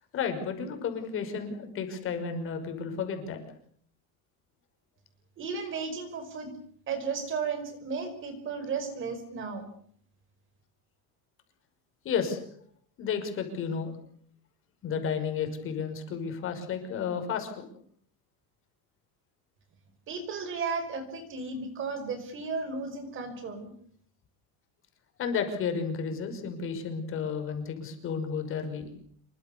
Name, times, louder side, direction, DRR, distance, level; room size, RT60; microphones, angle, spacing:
voice 1, 0.1-3.4 12.0-12.4 13.0-14.0 14.8-17.7 25.2-28.9, left 6 dB, 30° left, 6 dB, 5.9 m, -32 dB
voice 2, 5.4-6.6 6.9-9.7 20.1-23.7, right 5 dB, 30° right, 10 dB, 5.1 m, -34 dB
27.5 x 24.5 x 7.0 m, 0.63 s
cardioid pair, 170°, 39 cm